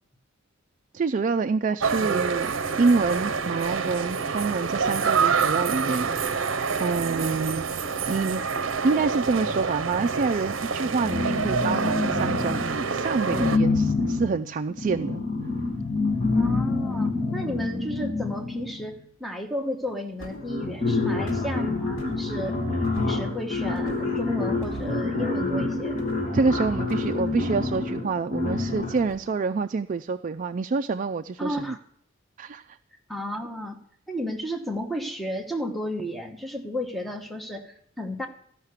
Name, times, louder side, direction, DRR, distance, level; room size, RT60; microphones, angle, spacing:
voice 1, 0.9-6.1 6.8-7.7 8.1-8.4 8.8-15.2 26.3-31.8 32.4-32.8, right 4 dB, 40° right, 8 dB, 0.4 m, -27 dB
sound 1, 1.8-13.6, right 5 dB, 65° right, 0.7 m, -27 dB
sound 2, 11.0-12.8 13.3-18.9 19.9-20.0 20.2-29.1, left 3 dB, 40° left, 2.6 m, -27 dB
voice 2, 16.3-22.6 23.0-26.0 31.4-31.8 33.1-33.8 34.1-38.3, left 1 dB, ahead, 3 dB, 1.0 m, -33 dB
sound 3, 20.2-20.6 21.3-21.5 22.0-22.2 22.8-23.3 23.8-24.3 24.6-25.0 26.0-26.3 26.9-27.7 29.0-29.4 29.8-29.9, left 1 dB, 85° left, 2.3 m, -43 dB
14.5 x 5.7 x 8.1 m, 0.66 s
head